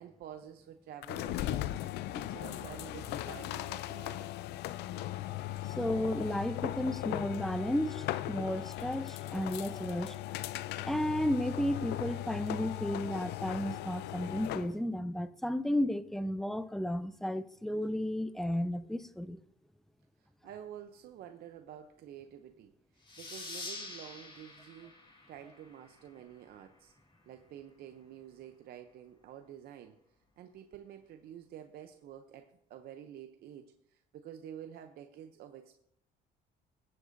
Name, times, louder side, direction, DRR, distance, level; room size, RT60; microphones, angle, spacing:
voice 1, 0.0-1.8 2.1-4.3 20.2-26.9 27.3-30.0 30.4-35.8, right 10 dB, 65° right, 0.7 m, -49 dB
sound 1, 1.0-14.7, left 14 dB, 80° left, 0.5 m, -38 dB
voice 2, 5.8-10.1 10.9-19.4, left 1 dB, ahead, 0.5 m, -33 dB
sound 2, 23.1-26.3, left 3 dB, 30° left, 1.8 m, -46 dB
21.0 x 7.6 x 2.7 m
cardioid pair, 110°, 17 cm